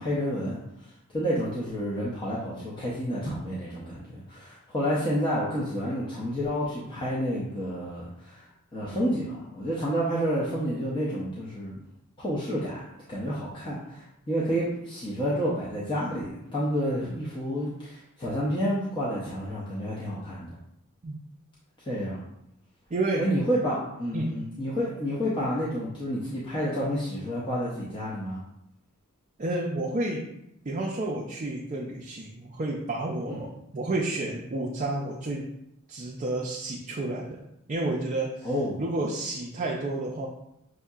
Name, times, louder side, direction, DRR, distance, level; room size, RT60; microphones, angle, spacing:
voice 1, 0.0-8.5 8.7-11.8 12.2-12.8 13.1-20.6 21.9-22.2 23.2-28.4 33.3-33.4 38.4-38.8, equal, 20° left, -7 dB, 0.6 m, -30 dB
voice 2, 22.9-23.3 24.1-24.3 29.4-30.3 30.6-35.5 35.9-37.4 37.7-38.5 38.8-40.3, right 2 dB, 35° right, -2 dB, 0.4 m, -30 dB
6.2 x 2.7 x 2.3 m, 0.81 s
head